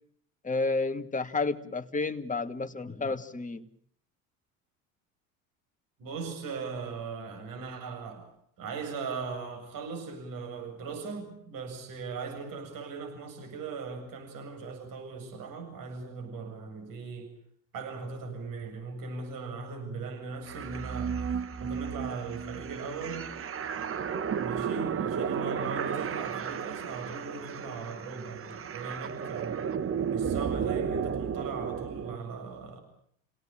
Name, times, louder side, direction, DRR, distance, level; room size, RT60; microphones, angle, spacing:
voice 1, 0.4-3.6, left 3 dB, 20° left, 8 dB, 2.1 m, -31 dB
voice 2, 6.0-8.3 8.6-17.3 17.7-21.2 21.6-23.3 24.3-29.7 30.1-32.8, right 4 dB, 50° right, 5 dB, 7.7 m, -39 dB
sound 1, 20.4-32.2, right 7 dB, 30° right, 1.4 m, -33 dB
28.5 x 18.0 x 9.0 m, 0.66 s
hypercardioid pair, 80°, 42 cm